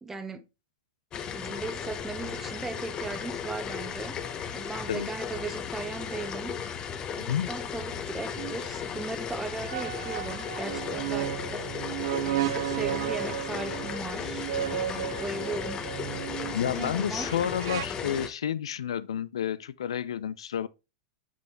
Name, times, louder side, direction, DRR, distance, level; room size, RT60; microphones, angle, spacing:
voice 1, 0.0-0.4 1.3-6.6 7.1-11.8 12.2-15.8 16.4-17.4 17.8-18.3, right 3 dB, 10° right, 1.1 m, -38 dB
sound 1, 1.1-18.3, left 7 dB, 30° left, 0.9 m, -36 dB
sound 2, 8.4-8.6 9.7-17.9, right 12 dB, 65° right, 0.5 m, -34 dB
voice 2, 16.5-20.7, left 9 dB, 80° left, 0.4 m, -30 dB
8.1 x 4.1 x 3.2 m
hypercardioid pair, 110°, 3 cm